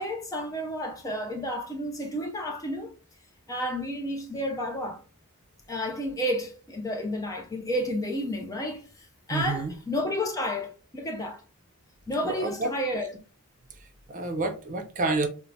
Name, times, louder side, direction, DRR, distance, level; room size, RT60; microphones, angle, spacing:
voice 1, 0.0-2.9 3.5-5.0 5.7-11.4 12.1-13.1, equal, 15° left, 0.4 m, -31 dB
voice 2, 9.3-9.7 12.2-12.7 13.7-15.3, right 3 dB, 35° right, 0.5 m, -29 dB
4.4 x 2.1 x 2.6 m
head